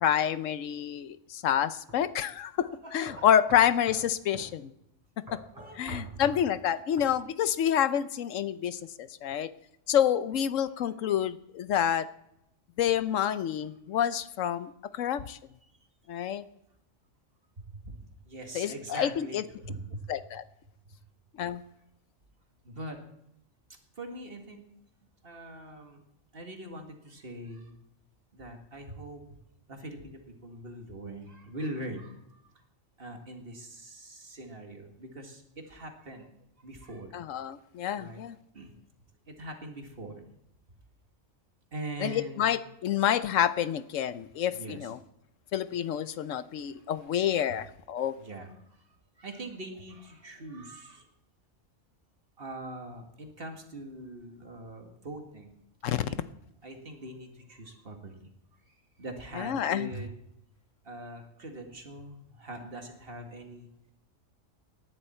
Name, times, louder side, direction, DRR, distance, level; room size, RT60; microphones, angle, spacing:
voice 1, 0.0-4.7 5.8-9.5 9.9-12.1 12.8-15.4 16.1-16.4 18.5-19.4 20.1-20.4 21.4-21.6 37.1-38.4 42.0-45.0 45.5-48.1 55.8-56.1 59.4-59.9, left 9 dB, 85° left, 14 dB, 1.1 m, -28 dB
sound 1, 1.9-2.0 2.6-2.7 3.0-4.1 4.3-4.5 5.3-6.4 7.0-7.1, equal, 15° right, 5.2 m, -46 dB
voice 2, 2.8-3.3 5.5-6.3 15.6-15.7 17.6-18.0 18.3-20.0 22.6-23.0 24.0-24.6 25.2-26.0 26.3-27.7 28.3-29.2 29.7-32.5 33.0-36.3 36.6-37.1 37.9-38.2 38.5-38.7 39.3-40.2 41.7-42.4 44.5-44.9 48.2-48.8 49.2-51.1 52.4-55.6 55.9-56.2 56.6-58.2 58.7-60.1 60.8-63.7, right 1 dB, 50° right, 4 dB, 2.1 m, -42 dB
18.5 x 11.0 x 4.4 m, 0.80 s
omnidirectional pair, 1.3 m